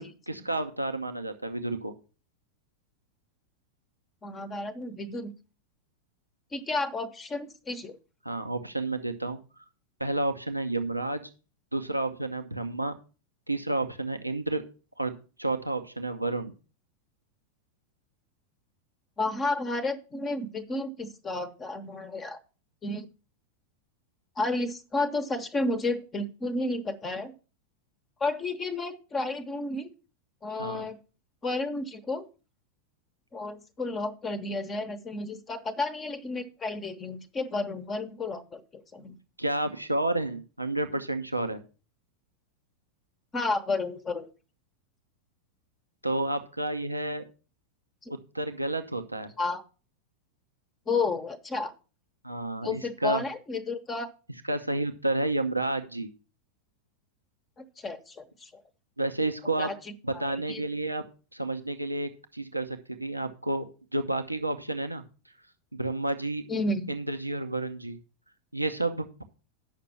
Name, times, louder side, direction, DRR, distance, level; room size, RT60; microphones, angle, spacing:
voice 1, 0.0-1.9 8.2-9.4 10.0-11.3 11.7-12.9 13.5-14.6 15.0-16.5 30.6-30.9 39.4-41.6 46.0-47.2 48.1-49.3 52.2-53.2 54.4-56.1 59.0-59.7 60.0-61.0 61.3-63.6 63.9-65.0 65.7-66.4 66.9-68.0 68.5-69.2, right 2 dB, 85° right, 7 dB, 0.7 m, -30 dB
voice 2, 4.2-5.3 6.5-8.0 19.2-22.4 22.8-23.1 24.4-27.3 28.2-29.9 30.4-31.0 31.4-32.3 33.3-38.6 38.9-39.2 43.3-44.3 48.0-48.1 49.4-49.6 50.9-51.7 52.6-54.1 57.6-58.6 59.6-60.6 66.5-66.9, left 2 dB, 20° left, 9 dB, 0.9 m, -32 dB
8.9 x 6.0 x 5.5 m, 0.35 s
figure-of-eight pair, 90°, 0 cm